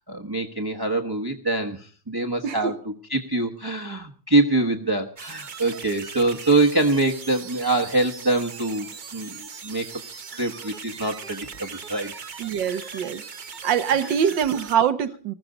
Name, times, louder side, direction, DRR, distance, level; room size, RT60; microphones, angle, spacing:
voice 1, 0.0-2.7 3.1-9.9 10.3-12.1 12.7-12.8, right 2 dB, 15° right, 0.8 m, -24 dB
voice 2, 2.4-2.7 12.4-13.2 13.6-15.3, right 8 dB, 70° right, 1.6 m, -23 dB
sound 1, 5.2-14.8, right 5 dB, 50° right, 0.5 m, -39 dB
20.0 x 15.0 x 3.9 m
omnidirectional pair, 2.1 m